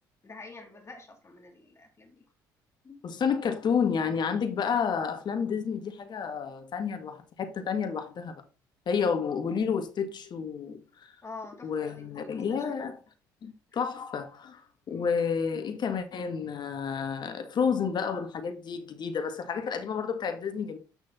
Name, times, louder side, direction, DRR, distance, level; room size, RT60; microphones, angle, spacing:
voice 1, 0.2-2.2 2.8-3.0 11.2-12.8 13.8-13.9 14.9-15.1, left 3 dB, 30° left, 3.2 m, -47 dB
voice 2, 3.0-8.4 8.8-11.1 11.6-13.0 13.4-14.6 14.9-20.8, left 6 dB, 50° left, 1.8 m, -30 dB
8.2 x 6.5 x 4.2 m
hypercardioid pair, 65°, 9 cm